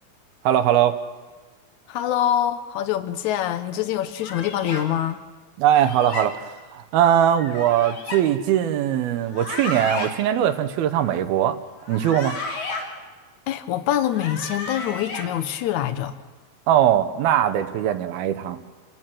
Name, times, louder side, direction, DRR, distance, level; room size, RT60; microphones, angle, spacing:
voice 1, 0.4-1.0 5.6-6.4 6.7-11.6 11.9-12.4 16.7-18.6, right 10 dB, 75° right, 9 dB, 2.7 m, -20 dB
voice 2, 1.9-5.2 13.5-16.2, left 11 dB, 75° left, 11 dB, 1.8 m, -25 dB
sound 1, 4.2-4.8 5.7-6.3 7.4-8.2 9.2-10.1 11.8-12.8 14.0-15.3, left 3 dB, 55° left, 4.8 m, -33 dB
28.5 x 15.5 x 7.7 m, 1.3 s
omnidirectional pair, 4.6 m